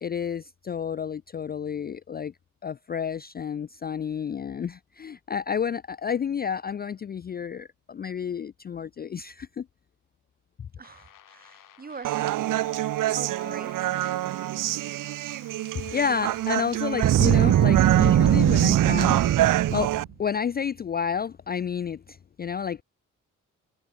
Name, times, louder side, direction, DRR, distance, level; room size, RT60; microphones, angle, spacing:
voice 1, 0.0-2.3 2.6-9.7 10.6-10.7 15.7-19.2 19.7-19.9 20.2-22.8, left 7 dB, 30° left, 0.4 m, -30 dB
sound 1, 10.8-17.8, left 10 dB, 80° left, 7.8 m, -54 dB
voice 2, 10.8-12.6 13.2-14.4, right 5 dB, 30° right, 2.5 m, -42 dB
Human voice, 12.0-20.0, right 14 dB, 75° right, 0.5 m, -28 dB
Boom, 16.9-20.1, right 11 dB, 60° right, 0.9 m, -20 dB
wide cardioid pair, 165°, 32 cm